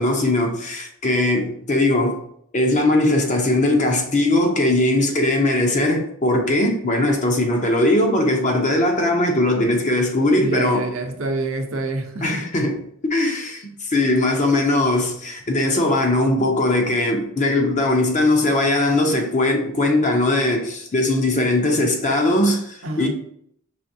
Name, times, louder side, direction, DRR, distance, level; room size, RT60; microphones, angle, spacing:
voice 1, 0.0-2.2 2.5-10.9 12.2-23.1, left 1 dB, 35° left, 0.7 m, -20 dB
voice 2, 10.4-12.4 22.8-23.1, right 2 dB, 65° right, 0.7 m, -27 dB
4.9 x 3.3 x 2.7 m
head